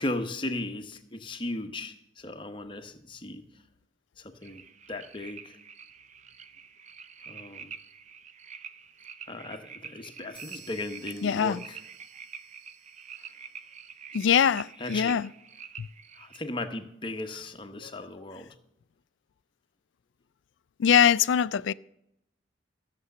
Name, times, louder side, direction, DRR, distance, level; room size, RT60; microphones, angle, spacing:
voice 1, 0.0-3.4 4.2-4.6 4.9-5.6 7.2-7.7 9.3-11.8 13.2-13.3 14.8-15.1 16.2-18.5, left 2 dB, 25° left, 1.0 m, -36 dB
sound 1, 4.4-16.4, right 7 dB, 40° right, 0.6 m, -46 dB
sound 2, 10.3-14.1, right 5 dB, 15° right, 1.1 m, -54 dB
voice 2, 11.2-11.6 14.1-15.3 15.8-15.9 17.8-18.1 20.8-21.7, left 8 dB, 80° left, 0.4 m, -23 dB
14.5 x 6.9 x 6.7 m
head